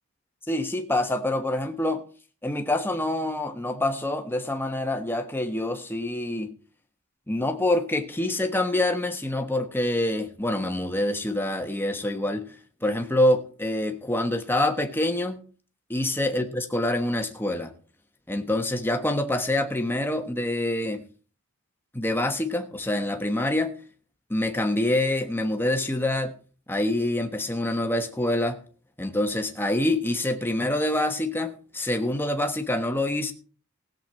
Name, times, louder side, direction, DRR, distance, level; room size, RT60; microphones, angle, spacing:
voice 1, 0.5-2.0 2.4-6.5 7.3-12.5 12.8-15.4 15.9-17.7 18.3-21.0 21.9-23.7 24.3-26.3 26.7-28.6 29.0-33.3, left 1 dB, 10° left, 1.2 m, -26 dB
17.0 x 7.9 x 4.4 m
head